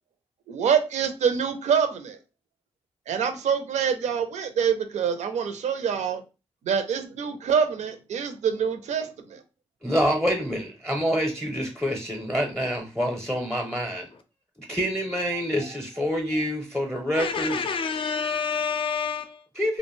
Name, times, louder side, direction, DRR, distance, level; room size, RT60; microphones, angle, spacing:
voice 1, 0.5-2.2 3.1-6.2 6.7-9.4, right 7 dB, 80° right, 0.5 m, -25 dB
voice 2, 9.8-14.1 14.7-17.6 19.6-19.8, equal, ahead, 0.6 m, -26 dB
voice 3, 17.2-19.4, left 6 dB, 50° left, 0.4 m, -28 dB
2.4 x 2.1 x 3.0 m
cardioid pair, 65°, 12 cm